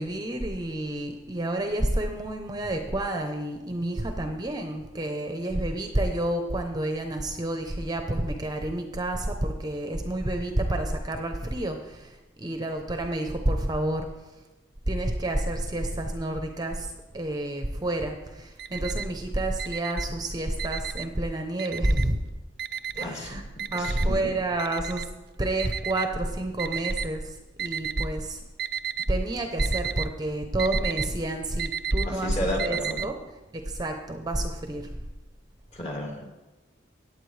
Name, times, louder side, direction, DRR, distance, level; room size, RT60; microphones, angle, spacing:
voice 1, 0.0-14.1 14.9-22.2 23.0-23.4 23.7-25.1 25.4-28.4 29.1-33.2 33.5-34.9, right 1 dB, 20° right, 5 dB, 0.8 m, -29 dB
Alarm, 18.3-19.2 19.6-21.2 21.6-22.2 22.6-27.1 27.6-28.2 28.5-29.1 29.4-33.1, right 8 dB, 60° right, 0.5 m, -33 dB
voice 2, 23.0-23.4 23.7-24.2 32.0-33.1 35.7-36.3, left 1 dB, 35° left, -1 dB, 2.6 m, -32 dB
15.0 x 8.9 x 3.3 m, 1.1 s
head